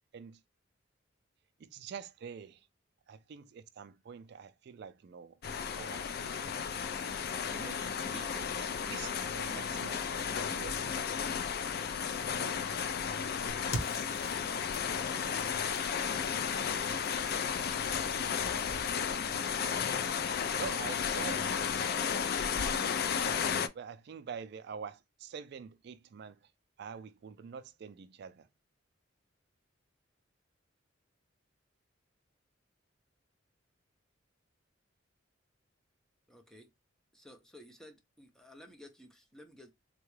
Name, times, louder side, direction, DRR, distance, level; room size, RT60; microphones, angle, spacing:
voice 1, 1.6-2.7 3.1-5.4 5.7-6.4 7.5-10.8 20.6-21.6 23.7-26.4 26.8-28.5, right 6 dB, 55° right, 0.3 m, -46 dB
sound 1, 5.4-23.7, left 7 dB, 50° left, 0.4 m, -33 dB
sound 2, 13.5-19.3, left 1 dB, 90° left, 0.8 m, -45 dB
voice 2, 36.3-36.7 37.1-39.7, left 1 dB, 5° left, 0.6 m, -54 dB
3.6 x 2.2 x 3.1 m
head